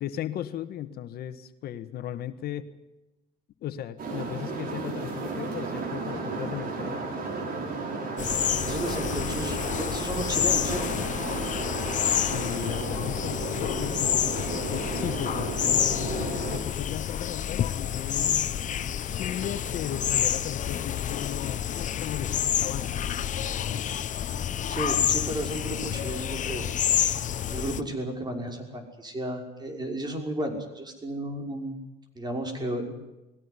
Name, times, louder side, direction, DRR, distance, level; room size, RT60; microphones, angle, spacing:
voice 1, 0.0-2.7 3.6-7.0 12.3-18.6 19.0-22.9, left 11 dB, 70° left, 10 dB, 1.5 m, -36 dB
sound 1, 4.0-16.6, right 3 dB, 60° right, 6.7 m, -33 dB
sound 2, 8.2-27.8, left 9 dB, 50° left, 1.1 m, -29 dB
voice 2, 8.4-10.8 24.5-26.7 27.4-31.8 32.1-32.9, right 1 dB, 25° right, 4 dB, 6.0 m, -33 dB
21.0 x 17.0 x 9.8 m, 0.98 s
cardioid pair, 110°, 17 cm